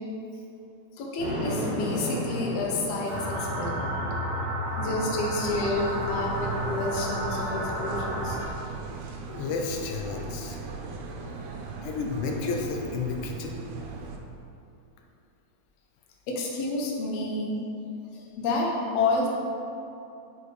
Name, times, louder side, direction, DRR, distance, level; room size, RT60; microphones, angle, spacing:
voice 1, 1.0-4.1 4.8-8.4 16.3-17.6 18.1-19.3, left 2 dB, 70° left, -1 dB, 1.7 m, -29 dB
Thunder, 1.2-3.7, equal, 65° right, 2.6 m, -32 dB
sound 1, 3.1-8.4, right 1 dB, 40° right, 0.6 m, -31 dB
sound 2, 5.5-14.2, right 4 dB, 90° right, 2.1 m, -39 dB
voice 2, 9.3-10.6 11.8-13.6, left 4 dB, 90° left, 1 dB, 2.1 m, -31 dB
6.4 x 4.9 x 3.2 m, 2.7 s
omnidirectional pair, 3.4 m